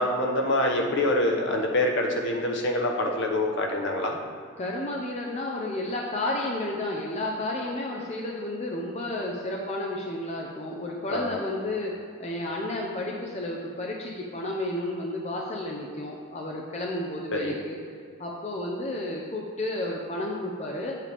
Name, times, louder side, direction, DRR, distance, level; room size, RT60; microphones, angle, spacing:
voice 1, 0.0-4.2 11.1-11.4 17.3-17.5, left 1 dB, 55° left, 1 dB, 1.0 m, -25 dB
voice 2, 4.6-17.8 18.2-21.0, left 1 dB, 30° left, -1 dB, 0.7 m, -32 dB
8.2 x 7.4 x 3.5 m, 2.3 s
head